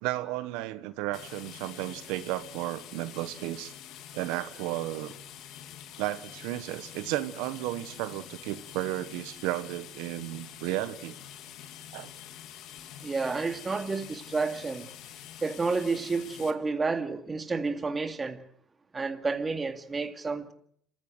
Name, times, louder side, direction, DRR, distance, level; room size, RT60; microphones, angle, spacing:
voice 1, 0.0-3.7 4.1-5.1 6.0-11.2 11.9-12.1, right 16 dB, 85° right, 1.2 m, -33 dB
sound 1, 1.1-16.5, left 10 dB, 70° left, 2.3 m, -46 dB
voice 2, 13.0-14.9 15.4-18.4 18.9-20.5, right 4 dB, 25° right, 2.3 m, -30 dB
26.5 x 15.0 x 8.0 m
cardioid pair, 100°, 0 cm